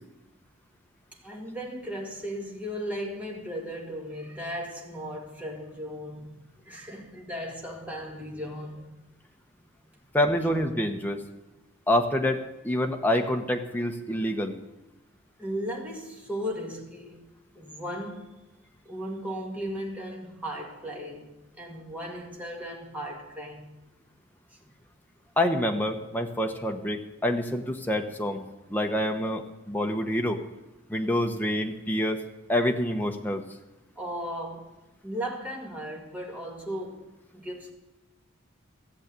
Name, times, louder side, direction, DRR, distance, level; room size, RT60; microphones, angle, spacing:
voice 1, 1.1-9.0 15.4-17.2 17.6-18.3 18.8-23.7 24.5-24.6 34.0-34.7 35.0-37.7, equal, 5° right, 2.1 m, -36 dB
voice 2, 10.1-11.2 11.9-12.4 12.6-14.5 25.4-28.4 28.7-30.4 30.9-32.2 32.5-33.4, left 1 dB, 10° left, 1.0 m, -27 dB
15.0 x 7.5 x 8.2 m
head